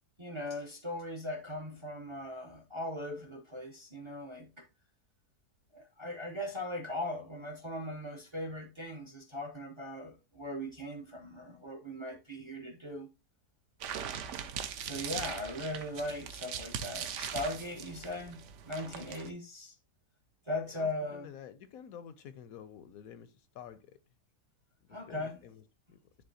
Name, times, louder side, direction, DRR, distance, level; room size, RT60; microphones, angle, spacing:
voice 1, 0.2-4.6 5.7-13.1 14.8-19.7 20.5-21.3 24.9-25.4, left 1 dB, 30° right, 0.5 m, -39 dB
sound 1, 13.8-19.3, right 8 dB, 65° right, 0.7 m, -40 dB
voice 2, 20.7-24.0 24.9-25.6, left 8 dB, 70° left, 0.9 m, -49 dB
10.5 x 3.5 x 2.7 m
omnidirectional pair, 1.8 m